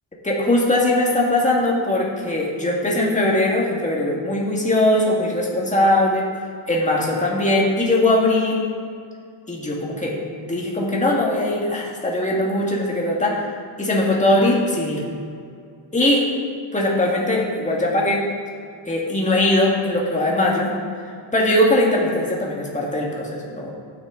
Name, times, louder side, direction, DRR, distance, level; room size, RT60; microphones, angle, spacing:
voice 1, 0.2-6.3 6.7-8.7 9.5-13.5 13.8-15.0 15.9-16.2 16.7-18.2 18.9-20.7 21.3-23.7, left 1 dB, 15° left, -3 dB, 1.8 m, -20 dB
12.0 x 8.9 x 3.8 m, 2.3 s
wide cardioid pair, 150°, 47 cm